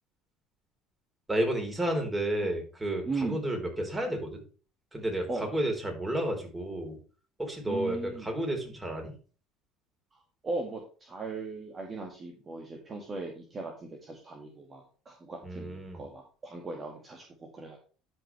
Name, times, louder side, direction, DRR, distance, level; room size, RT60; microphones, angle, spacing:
voice 1, 1.3-4.4 4.9-7.0 7.4-9.2 15.4-16.0, right 1 dB, 15° right, 2 dB, 4.2 m, -31 dB
voice 2, 3.1-3.5 5.3-5.6 7.7-8.3 10.1-17.8, right 3 dB, 30° right, 1 dB, 2.1 m, -38 dB
12.0 x 5.4 x 3.5 m, 0.37 s
hypercardioid pair, 70°, 0 cm